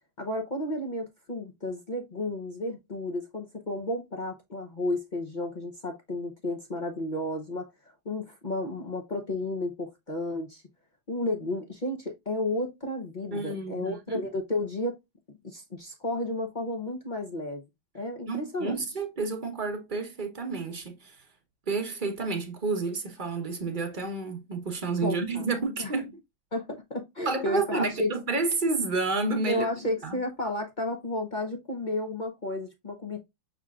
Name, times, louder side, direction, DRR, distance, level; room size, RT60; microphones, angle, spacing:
voice 1, 0.2-7.7 8.0-10.6 11.1-15.0 15.4-17.6 17.9-18.8 25.0-25.4 25.8-25.9 26.5-28.1 29.5-33.2, left 1 dB, 55° left, 0.5 m, -32 dB
voice 2, 13.3-14.2 18.3-21.2 21.7-26.1 27.2-29.7 30.0-30.2, right 3 dB, 35° right, 0.9 m, -30 dB
6.1 x 3.6 x 2.4 m
omnidirectional pair, 2.1 m